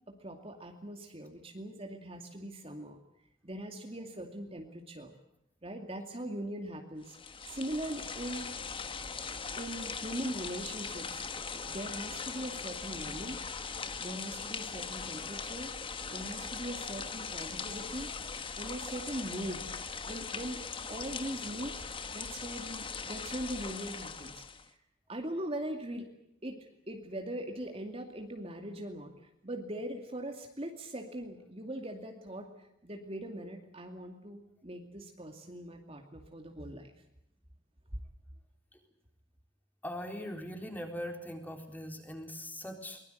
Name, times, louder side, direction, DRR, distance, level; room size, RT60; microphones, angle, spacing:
voice 1, 0.1-3.0 3.4-5.1 5.6-7.2 7.5-8.6 9.6-11.3 11.6-13.4 14.0-15.7 16.1-18.1 18.6-19.7 20.1-20.6 20.9-21.9 22.1-24.8 25.1-26.1 26.4-36.9, right 1 dB, 30° right, 4 dB, 2.4 m, -41 dB
sound 1, 7.0-24.7, left 5 dB, 25° left, 1.3 m, -40 dB
voice 2, 39.8-43.0, equal, 10° left, 4 dB, 4.0 m, -41 dB
23.5 x 21.5 x 7.9 m, 0.82 s
head